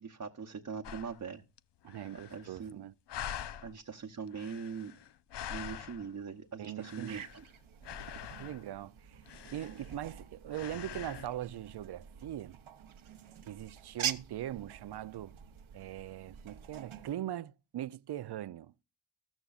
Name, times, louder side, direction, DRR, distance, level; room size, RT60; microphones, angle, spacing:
voice 1, 0.0-1.4 2.3-2.8 3.6-4.9 5.5-7.4, right 6 dB, 35° right, 0.9 m, -42 dB
sound 1, 0.8-1.2 1.6-1.7 1.9-2.7 3.1-3.7 4.3-6.2 6.6-7.5 7.8-8.7 9.2-10.2 10.5-11.3, left 10 dB, 55° left, 0.6 m, -44 dB
voice 2, 1.8-2.9 6.6-7.2 8.4-9.2 9.5-12.6 13.5-15.4 15.7-18.7, right 12 dB, 55° right, 0.5 m, -41 dB
sound 2, 7.1-17.2, right 9 dB, 75° right, 0.9 m, -45 dB
13.5 x 13.5 x 2.4 m
cardioid pair, 45°, 49 cm